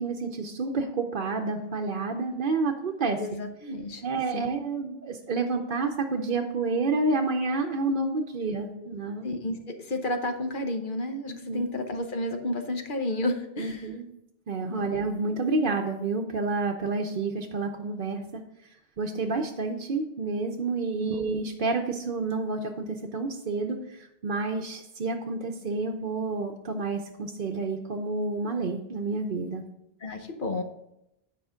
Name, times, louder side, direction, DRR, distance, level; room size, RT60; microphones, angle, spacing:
voice 1, 0.0-3.2 4.0-9.3 11.3-11.7 13.6-14.0 14.5-18.4 19.0-29.7, right 3 dB, 55° right, 1 dB, 0.8 m, -29 dB
voice 2, 3.2-4.0 4.3-4.5 9.2-13.9 14.7-14.9 21.0-21.2 30.0-30.6, left 1 dB, 55° left, 5 dB, 1.0 m, -31 dB
9.6 x 5.0 x 4.9 m, 0.84 s
omnidirectional pair, 1.0 m